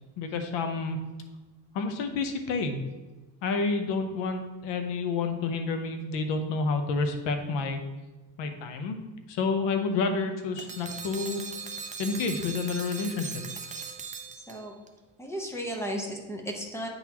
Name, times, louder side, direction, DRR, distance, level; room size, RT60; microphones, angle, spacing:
voice 1, 0.2-1.0 1.7-2.8 3.4-7.8 8.4-9.0 9.3-11.4 12.0-13.4, left 4 dB, 85° left, 6 dB, 0.9 m, -29 dB
sound 1, 10.6-14.9, right 5 dB, 20° right, 0.3 m, -39 dB
voice 2, 14.3-14.7 15.2-16.9, equal, 5° left, 0 dB, 0.8 m, -35 dB
8.8 x 4.0 x 2.9 m, 1.2 s
cardioid pair, 145°, 42 cm